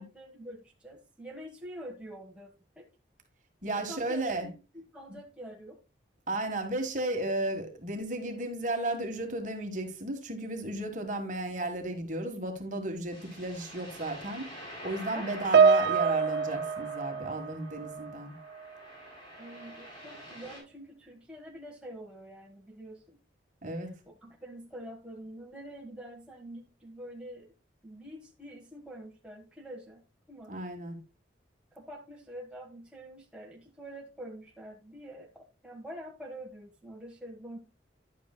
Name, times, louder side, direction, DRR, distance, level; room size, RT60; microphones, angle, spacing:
voice 1, 0.0-2.9 3.9-5.8 15.1-15.2 19.4-23.2 23.6-27.5 27.8-30.0 30.3-30.6 31.7-37.6, equal, 5° right, 1.3 m, -46 dB
voice 2, 3.6-4.5 6.3-14.5 14.8-18.3 23.6-23.9 30.5-31.0, right 2 dB, 45° right, 1.5 m, -34 dB
sound 1, 13.1-20.6, equal, 30° left, 5.7 m, -46 dB
Piano, 15.5-18.2 18.4-18.8 19.6-19.7, right 5 dB, 60° right, 0.4 m, -25 dB
10.5 x 8.3 x 2.2 m
head